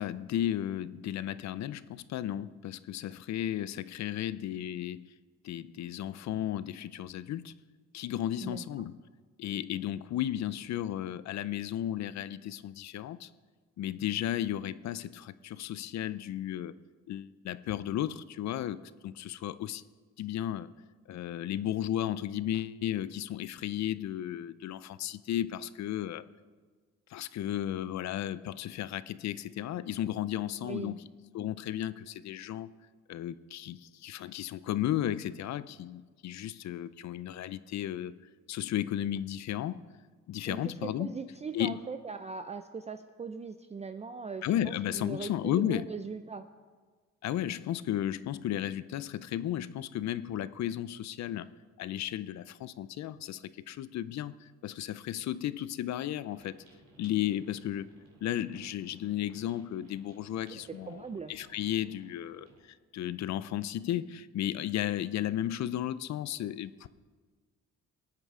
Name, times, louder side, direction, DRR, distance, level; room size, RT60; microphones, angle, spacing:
voice 1, 0.0-5.1 5.4-7.6 7.9-8.9 9.4-13.3 13.8-16.7 17.1-19.8 20.2-20.7 21.1-26.2 27.1-31.0 31.3-32.7 33.1-38.1 38.5-39.8 40.3-41.1 41.5-41.8 44.4-45.9 47.2-51.5 51.8-56.6 57.0-57.9 58.2-66.9, left 12 dB, 65° left, 16 dB, 0.5 m, -34 dB
voice 2, 8.4-8.9 30.6-31.0 40.5-46.5 60.5-61.3, right 5 dB, 20° right, 8 dB, 0.5 m, -40 dB
sound 1, 56.3-62.6, right 2 dB, 65° right, 3.2 m, -60 dB
19.5 x 9.1 x 3.7 m, 1.4 s
cardioid pair, 90°, 30 cm